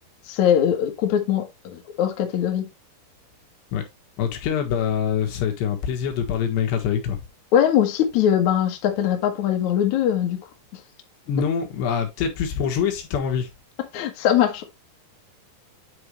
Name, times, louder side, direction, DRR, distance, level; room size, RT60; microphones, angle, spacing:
voice 1, 0.3-2.6 7.5-10.4 13.9-14.6, left 10 dB, 60° left, 2.1 m, -21 dB
voice 2, 4.2-7.2 11.3-13.5, left 7 dB, 75° left, 3.6 m, -24 dB
9.8 x 4.7 x 3.2 m
omnidirectional pair, 5.1 m